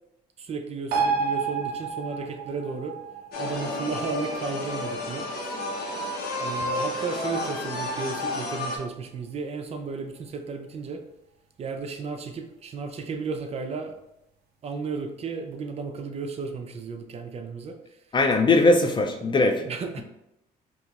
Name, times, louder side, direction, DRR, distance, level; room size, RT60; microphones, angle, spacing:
voice 1, 0.4-3.0 3.4-5.6 6.0-11.0 11.6-14.0 14.6-18.0 18.5-18.7 19.6-20.0, right 4 dB, 40° right, 6 dB, 0.4 m, -34 dB
sound 1, 0.9-7.9 8.2-8.3, right 5 dB, 70° right, 0.8 m, -32 dB
sound 2, 3.3-8.8, left 2 dB, 65° left, 0.8 m, -31 dB
voice 2, 18.1-19.6, left 2 dB, 30° left, 5 dB, 0.4 m, -20 dB
2.8 x 2.3 x 4.0 m, 0.87 s
cardioid pair, 110°, 17 cm